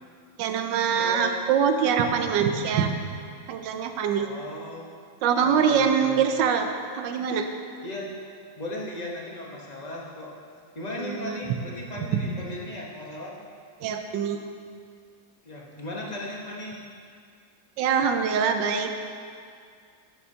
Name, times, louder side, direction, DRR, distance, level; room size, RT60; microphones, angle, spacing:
voice 1, 0.4-2.9 3.5-4.3 5.2-6.7 6.9-7.5 11.0-11.4 13.8-14.4 17.8-18.9, right 7 dB, 80° right, 6 dB, 1.3 m, -24 dB
voice 2, 0.9-1.4 4.1-4.9 5.4-6.2 7.8-8.1 8.6-10.3 10.7-13.4 15.4-16.8, left 1 dB, 30° left, -3 dB, 1.0 m, -36 dB
11.0 x 8.5 x 2.8 m, 2.2 s
omnidirectional pair, 2.0 m